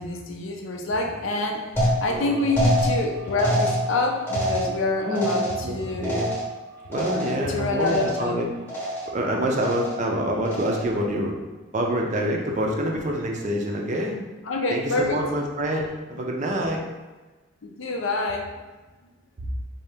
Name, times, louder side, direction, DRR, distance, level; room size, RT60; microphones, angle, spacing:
voice 1, 0.0-1.7 2.0-6.2 7.1-8.4 14.4-15.2 17.6-18.5, left 2 dB, 65° left, 2 dB, 0.5 m, -27 dB
sound 1, 1.8-7.5 7.8-8.4 8.7-9.2 9.6-10.1 10.5-11.0, equal, 10° left, 0.9 m, -27 dB
voice 2, 2.1-2.4 5.0-5.3 5.6-6.3 6.9-8.5 9.1-11.3 11.7-14.2 14.7-16.8, equal, 35° right, 0 dB, 0.5 m, -26 dB
3.9 x 2.8 x 3.4 m, 1.2 s
head